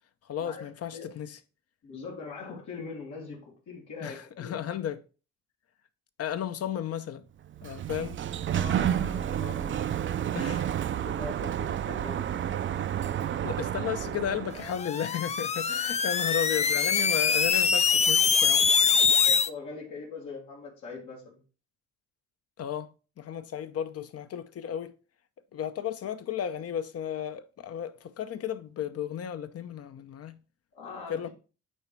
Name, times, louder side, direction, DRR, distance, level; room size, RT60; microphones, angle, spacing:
voice 1, 0.2-1.4 4.0-5.0 6.2-7.3 7.6-8.2 10.3-10.7 13.4-18.7 22.6-24.9 25.5-30.4 31.1-31.3, left 9 dB, 55° left, 0.7 m, -34 dB
voice 2, 1.8-4.6 8.5-10.3 11.0-12.4 19.3-21.4 30.7-31.3, left 4 dB, 80° left, 2.4 m, -42 dB
Sliding door, 7.4-14.8, right 10 dB, 40° right, 0.4 m, -30 dB
sound 1, 14.7-19.5, left 6 dB, 25° left, 0.4 m, -24 dB
8.7 x 3.2 x 4.6 m
cardioid pair, 90°, 30 cm